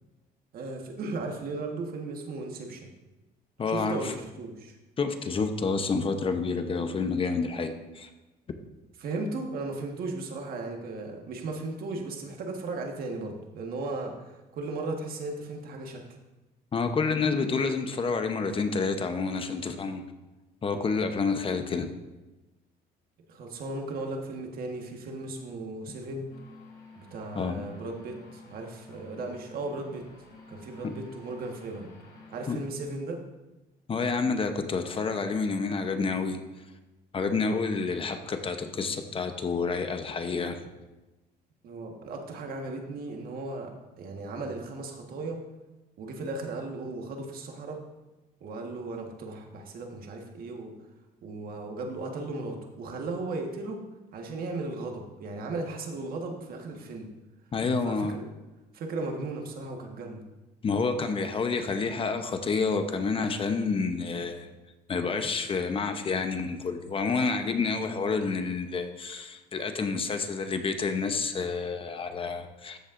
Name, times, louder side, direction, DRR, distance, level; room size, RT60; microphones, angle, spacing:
voice 1, 0.5-2.9 3.7-4.8 9.0-16.0 23.3-26.3 26.9-30.1 30.5-31.9 32.3-33.2 41.6-45.4 46.0-47.8 48.4-50.7 51.2-53.8 54.1-57.1 57.8-58.2 58.7-60.2, right 2 dB, 60° right, 2 dB, 1.5 m, -36 dB
voice 2, 3.6-4.1 5.0-8.1 16.7-20.0 20.6-21.9 27.3-27.6 30.8-30.9 32.5-32.6 33.9-36.4 37.1-40.7 57.5-58.1 60.6-64.5 64.9-72.8, left 4 dB, 30° left, 7 dB, 0.8 m, -29 dB
sound 1, 26.3-32.5, left 2 dB, 65° left, 3.3 m, -51 dB
13.5 x 7.2 x 2.6 m, 1.1 s
cardioid pair, 110°, 17 cm